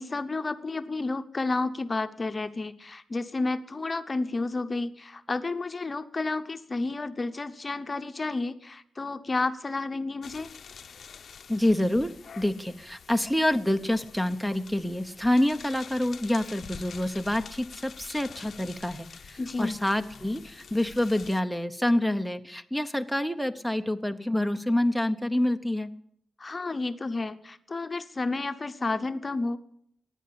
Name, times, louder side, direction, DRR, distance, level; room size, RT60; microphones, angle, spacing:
voice 1, 0.0-10.5 19.4-19.8 26.4-29.6, left 3 dB, 35° left, 10 dB, 0.9 m, -31 dB
sound 1, 10.2-21.4, left 6 dB, 70° left, 0.7 m, -47 dB
voice 2, 11.5-25.9, left 1 dB, ahead, 11 dB, 0.8 m, -27 dB
16.0 x 10.0 x 8.7 m, 0.70 s
cardioid pair, 80°, 0 cm